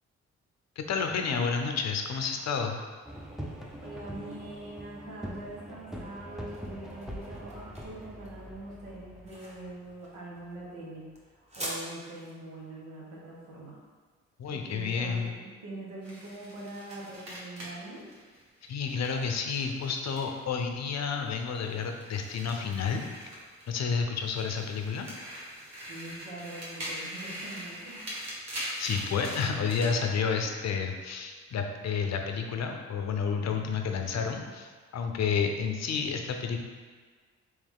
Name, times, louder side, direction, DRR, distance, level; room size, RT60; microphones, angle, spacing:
voice 1, 0.8-2.8 14.4-15.3 18.7-23.3 23.7-25.1 28.8-36.6, left 5 dB, 60° left, 4 dB, 0.6 m, -30 dB
sound 1, 3.1-10.6, equal, ahead, 0.6 m, -43 dB
voice 2, 3.8-11.1 11.6-13.7 14.6-18.0 25.9-28.0 30.1-30.2, right 2 dB, 90° right, -4 dB, 0.9 m, -43 dB
sound 2, 6.1-15.1, equal, 20° right, 1.1 m, -45 dB
sound 3, 16.0-20.6 20.9-23.9 24.2-29.9, equal, 55° right, 1.3 m, -42 dB
3.3 x 3.2 x 3.5 m, 1.5 s
supercardioid pair, 50°, 31 cm